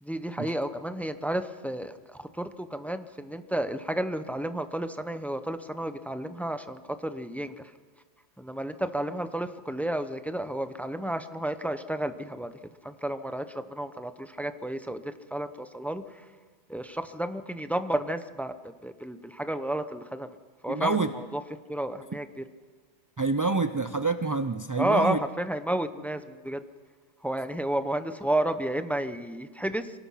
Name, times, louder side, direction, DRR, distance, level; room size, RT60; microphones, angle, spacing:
voice 1, 0.0-7.7 8.4-12.5 12.8-16.2 16.7-18.5 18.8-20.4 20.6-21.4 21.7-22.4 24.8-26.6 27.2-29.9, right 1 dB, ahead, 10 dB, 0.7 m, -32 dB
voice 2, 20.7-21.1 23.2-25.2, right 3 dB, 30° right, 9 dB, 0.3 m, -27 dB
26.0 x 18.5 x 5.7 m, 1.5 s
omnidirectional pair, 1.2 m